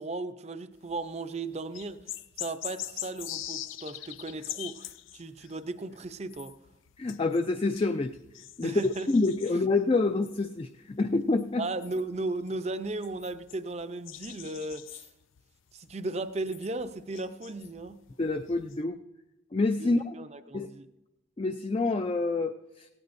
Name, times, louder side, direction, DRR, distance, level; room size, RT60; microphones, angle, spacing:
voice 1, 0.0-2.0 2.4-6.5 8.6-9.1 11.6-15.1 15.7-18.0 19.8-19.9 20.1-20.9, right 2 dB, 35° right, 11 dB, 0.6 m, -36 dB
sound 1, 0.7-1.2 1.5-18.8, left 13 dB, 85° left, 0.5 m, -44 dB
voice 2, 7.0-8.2 8.6-11.7 18.2-19.0 19.5-20.1 20.5-20.7 21.4-22.9, left 3 dB, 25° left, 8 dB, 0.4 m, -27 dB
17.5 x 17.0 x 2.6 m, 0.99 s
head